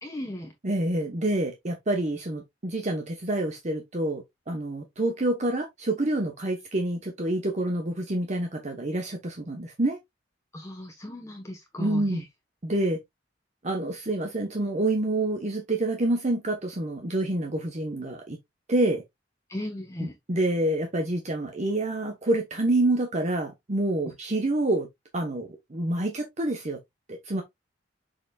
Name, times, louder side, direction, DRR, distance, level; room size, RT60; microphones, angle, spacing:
voice 1, 0.0-0.5 10.5-12.2 19.5-20.1, left 1 dB, 15° left, 1.2 m, -36 dB
voice 2, 0.6-10.0 11.8-12.2 12.6-13.0 13.6-18.4 18.7-19.0 20.0-24.9 25.1-26.8 27.1-27.4, right 1 dB, 40° right, 1.1 m, -27 dB
6.9 x 5.7 x 2.4 m
head